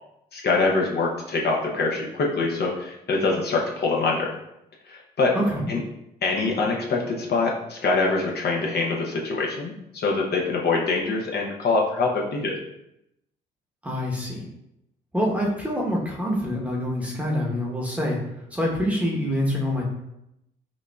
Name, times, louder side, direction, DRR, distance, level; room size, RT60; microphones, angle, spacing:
voice 1, 0.3-4.4 4.9-5.4 5.7-5.8 6.2-12.5, left 3 dB, 55° left, -1 dB, 0.7 m, -24 dB
voice 2, 5.3-5.7 13.8-14.5 15.1-18.2 18.5-19.9, equal, 5° right, -3 dB, 0.9 m, -26 dB
5.0 x 2.5 x 2.3 m, 0.84 s
cardioid pair, 90°, 20 cm